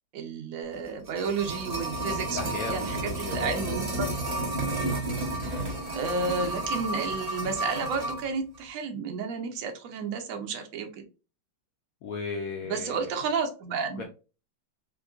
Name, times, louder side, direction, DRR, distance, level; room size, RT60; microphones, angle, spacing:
voice 1, 0.1-4.6 5.9-11.0 12.6-14.0, right 5 dB, 65° right, 0.8 m, -32 dB
sound 1, 0.8-8.3 8.5-8.6, right 1 dB, 50° right, 0.4 m, -31 dB
voice 2, 2.3-3.6 12.0-13.0 14.0-14.1, left 4 dB, 85° left, 0.7 m, -35 dB
3.6 x 2.5 x 2.3 m
omnidirectional pair, 2.1 m